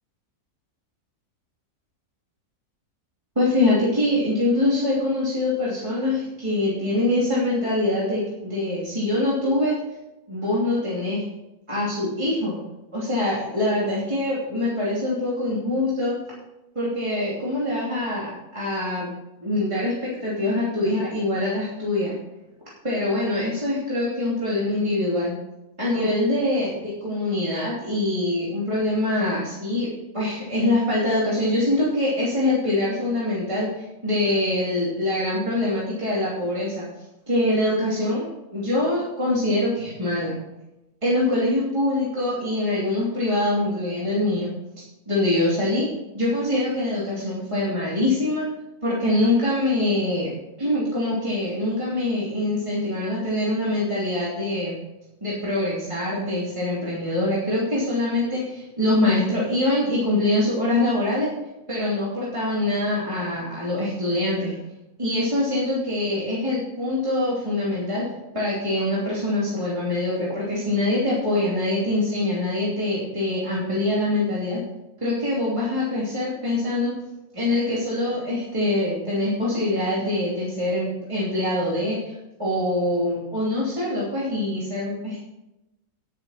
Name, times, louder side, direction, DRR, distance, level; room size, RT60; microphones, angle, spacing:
voice 1, 3.3-9.8 10.3-11.2 11.7-12.6 12.9-16.2 16.7-19.1 19.4-22.1 22.8-25.3 25.8-29.9 30.1-36.8 37.3-40.3 41.0-44.5 45.1-45.9 46.1-48.4 48.8-50.3 50.6-54.8 55.2-61.3 61.7-64.5 65.0-68.0 68.3-74.6 75.0-76.9 77.3-85.2, left 1 dB, 20° right, -8 dB, 3.0 m, -24 dB
10.5 x 10.5 x 4.3 m, 0.96 s
omnidirectional pair, 1.6 m